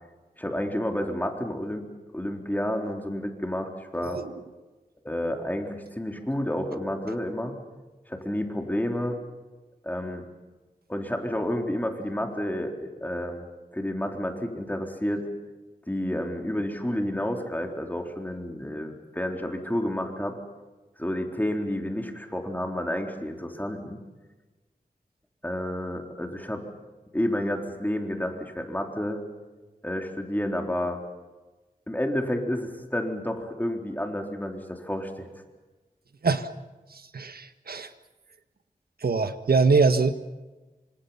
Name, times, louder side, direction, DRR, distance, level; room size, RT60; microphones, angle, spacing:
voice 1, 0.4-1.9 2.1-4.2 5.0-7.6 8.1-9.2 9.8-10.3 10.9-13.4 13.7-15.3 15.9-20.4 21.0-24.0 25.4-26.7 27.1-29.2 29.8-31.0 31.9-35.3, left 1 dB, 10° left, 3 dB, 3.8 m, -30 dB
voice 2, 36.9-37.9 39.0-40.1, right 4 dB, 85° right, 9 dB, 1.6 m, -23 dB
28.0 x 25.5 x 5.8 m, 1.2 s
wide cardioid pair, 80°, 15 cm